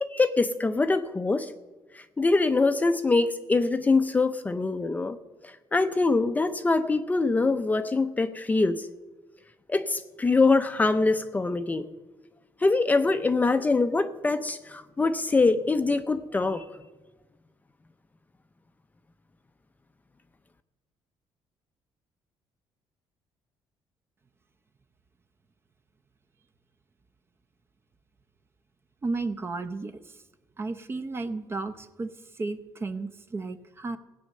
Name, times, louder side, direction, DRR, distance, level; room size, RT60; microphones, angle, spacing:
voice 1, 0.0-1.5 2.2-5.2 5.4-8.9 9.7-11.8 12.6-16.7, left 3 dB, 15° left, 9 dB, 0.6 m, -24 dB
voice 2, 29.0-29.9 30.6-34.0, right 3 dB, 25° right, 8 dB, 0.8 m, -33 dB
16.5 x 8.5 x 6.6 m, 1.2 s
cardioid pair, 125°, 9 cm